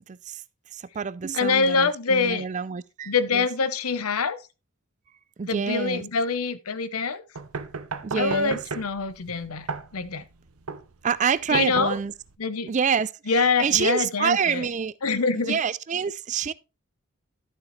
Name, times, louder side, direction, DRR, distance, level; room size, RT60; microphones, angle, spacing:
voice 1, 0.1-0.4 0.7-3.5 5.4-6.0 8.0-8.6 11.0-12.1 12.7-14.9 15.4-16.5, right 6 dB, 35° right, 0.4 m, -27 dB
voice 2, 1.3-2.4 3.1-4.4 5.5-7.2 8.2-9.7 9.9-10.2 11.5-12.0 12.4-12.7 13.3-14.7 15.0-15.6, left 4 dB, 85° left, 0.9 m, -25 dB
sound 1, 7.4-12.4, right 4 dB, 85° right, 0.9 m, -35 dB
12.0 x 6.9 x 3.1 m
head